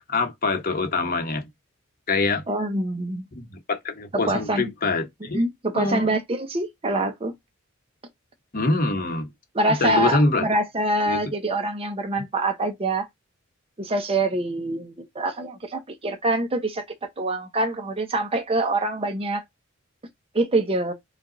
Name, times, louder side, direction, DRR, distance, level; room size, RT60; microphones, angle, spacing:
voice 1, 0.0-1.5 2.1-2.4 3.3-5.4 5.7-6.2 8.5-9.3 9.8-10.5 11.0-11.2, left 3 dB, 45° left, 1.1 m, -24 dB
voice 2, 2.5-3.3 4.1-4.6 5.3-7.3 9.5-13.1 13.8-16.8 17.2-19.4 20.3-20.9, right 2 dB, 30° right, 0.8 m, -25 dB
5.0 x 2.5 x 3.9 m
head